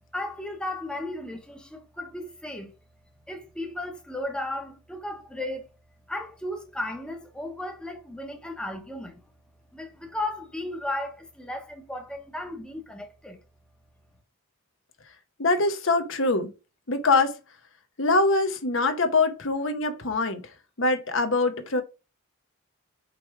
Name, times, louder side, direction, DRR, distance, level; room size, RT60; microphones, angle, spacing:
voice 1, 0.1-2.7 3.3-5.7 6.1-9.2 9.7-13.4, left 1 dB, 5° left, 1.0 m, -35 dB
voice 2, 15.4-16.5 16.9-17.4 18.0-20.5 20.8-21.8, left 3 dB, 60° left, 1.0 m, -23 dB
5.2 x 4.6 x 4.7 m
head